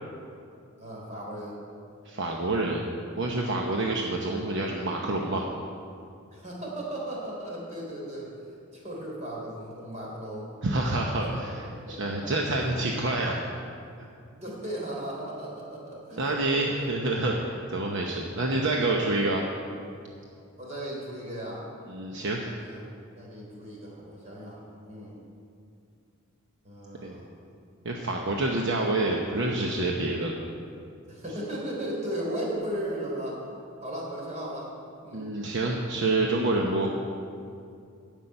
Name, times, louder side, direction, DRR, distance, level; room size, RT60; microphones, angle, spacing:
voice 1, 0.8-1.6 6.3-8.3 8.7-10.5 11.2-11.3 11.7-12.3 12.8-12.9 14.3-16.9 20.6-21.7 22.5-22.8 23.1-25.2 26.6-27.3 31.1-33.4 33.8-34.7 35.0-35.3, right 1 dB, 35° right, -3 dB, 3.5 m, -36 dB
voice 2, 2.1-2.9 3.2-5.4 10.6-11.6 11.9-13.4 14.0-14.1 16.2-19.4 21.9-22.5 27.0-27.1 27.8-30.4 35.1-36.9, right 2 dB, 60° right, 0 dB, 0.9 m, -27 dB
9.6 x 7.3 x 9.1 m, 2.4 s
head